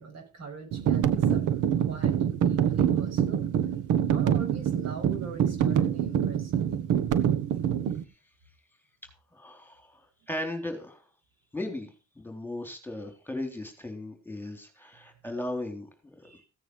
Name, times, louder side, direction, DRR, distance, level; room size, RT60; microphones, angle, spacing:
voice 1, 0.0-3.5 4.1-6.7 16.2-16.4, right 4 dB, 60° right, 3 dB, 6.8 m, -42 dB
sound 1, 0.7-8.0, right 9 dB, 85° right, 1.4 m, -25 dB
voice 2, 9.3-11.0 11.5-11.9 12.2-15.9, left 1 dB, 5° left, 5 dB, 3.6 m, -36 dB
16.0 x 9.2 x 4.8 m, 0.32 s
cardioid pair, 90°, 30 cm